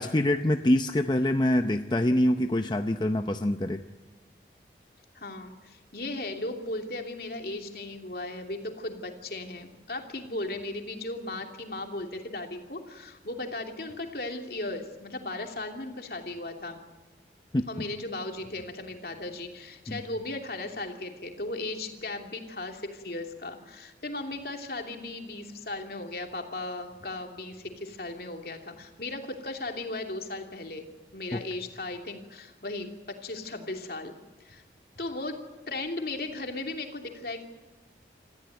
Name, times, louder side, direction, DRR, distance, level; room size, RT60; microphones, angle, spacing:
voice 1, 0.0-3.8 17.5-17.9 19.9-20.0 31.3-31.4, left 1 dB, 25° left, 7 dB, 0.6 m, -25 dB
voice 2, 5.1-16.8 17.7-30.9 31.1-34.1 34.4-34.6 35.0-37.4, left 2 dB, 60° left, 3 dB, 2.9 m, -36 dB
27.5 x 15.0 x 9.2 m, 1.2 s
head